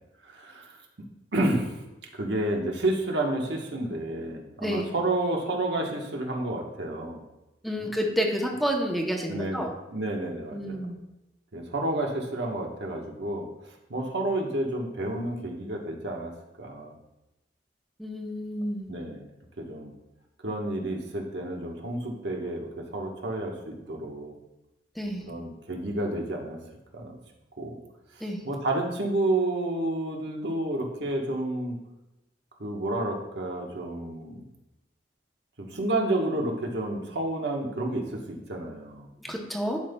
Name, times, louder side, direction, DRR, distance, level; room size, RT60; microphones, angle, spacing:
voice 1, 0.2-0.8 1.3-1.8 2.1-7.2 7.8-7.9 9.3-10.9 11.5-13.5 13.9-16.3 16.6-16.9 18.9-19.3 19.6-19.9 20.4-24.3 25.2-26.6 26.9-27.2 27.6-27.8 28.1-31.8 32.6-34.5 35.6-39.1, right 1 dB, 80° right, 1 dB, 1.2 m, -30 dB
voice 2, 7.6-9.7 10.5-11.0 18.0-18.9 25.0-25.2 28.2-28.4 39.2-39.8, equal, ahead, 0 dB, 0.8 m, -29 dB
12.0 x 5.3 x 2.3 m, 0.96 s
head